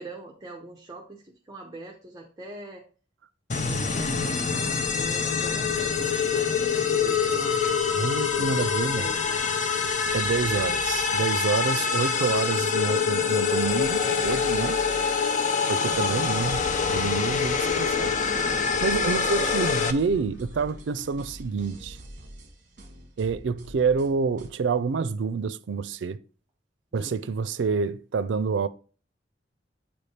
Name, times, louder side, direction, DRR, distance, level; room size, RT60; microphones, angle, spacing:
voice 1, 0.0-2.8 3.6-9.5 11.7-12.2 14.7-15.0 19.0-19.6 26.9-27.2, right 2 dB, 20° right, 0.8 m, -42 dB
sound 1, 3.5-19.9, left 5 dB, 45° left, 0.6 m, -25 dB
voice 2, 8.0-9.0 10.1-14.8 15.7-18.1 18.6-22.0 23.2-26.2 26.9-28.7, right 5 dB, 90° right, 0.4 m, -28 dB
sound 2, 10.1-21.4, left 1 dB, 85° left, 1.1 m, -47 dB
sound 3, 18.3-24.5, equal, 45° right, 1.3 m, -46 dB
8.7 x 3.4 x 4.2 m
head